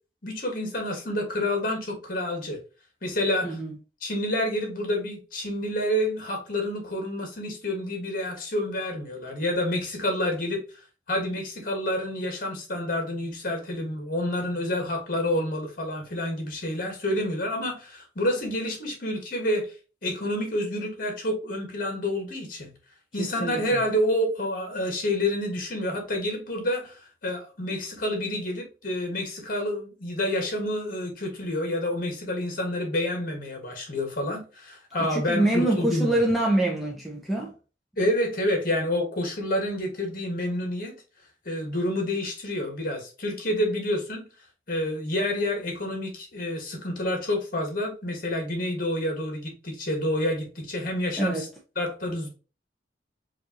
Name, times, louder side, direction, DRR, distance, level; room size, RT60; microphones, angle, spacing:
voice 1, 0.2-2.6 3.0-3.6 4.0-10.6 11.1-19.7 20.0-22.7 23.1-36.2 38.0-40.9 41.4-44.2 44.7-51.5 51.7-52.3, left 1 dB, 50° left, 1.6 m, -28 dB
voice 2, 3.4-3.8 23.2-23.8 35.0-37.5 51.2-51.4, right 1 dB, ahead, 0.8 m, -25 dB
4.9 x 2.7 x 2.9 m
head